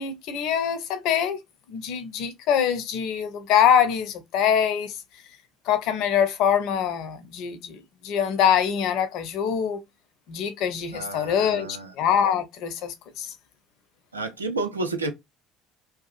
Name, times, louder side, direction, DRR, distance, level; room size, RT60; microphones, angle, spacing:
voice 1, 0.0-1.4 1.7-4.9 5.7-7.8 8.0-9.8 10.3-11.7 12.0-13.3, left 8 dB, 60° left, 0.5 m, -24 dB
voice 2, 10.9-11.9 14.1-15.1, right 3 dB, 85° right, 0.4 m, -30 dB
2.7 x 2.3 x 2.3 m
figure-of-eight pair, 60°, 0 cm